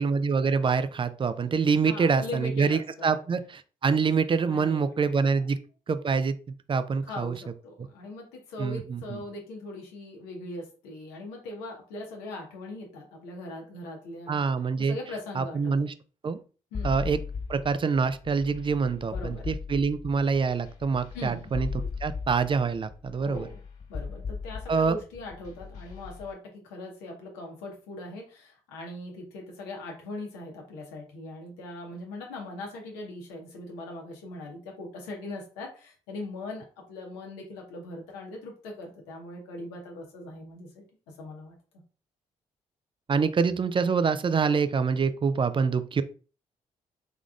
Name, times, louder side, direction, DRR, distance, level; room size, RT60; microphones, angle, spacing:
voice 1, 0.0-5.6 5.9-6.3 6.7-7.4 8.6-9.2 14.3-15.0 15.3-15.9 16.2-16.4 16.8-17.2 17.5-23.5 24.7-25.0 43.1-46.0, right 5 dB, 30° right, 12 dB, 0.4 m, -26 dB
voice 2, 1.9-3.2 4.5-5.1 7.0-14.4 14.8-15.7 16.7-17.0 19.0-19.5 21.1-21.5 23.2-23.6 23.9-41.5, left 2 dB, 80° left, 1 dB, 1.0 m, -40 dB
sound 1, 16.7-26.3, left 5 dB, 40° left, 1.7 m, -37 dB
3.6 x 3.6 x 2.4 m, 0.37 s
hypercardioid pair, 40°, 17 cm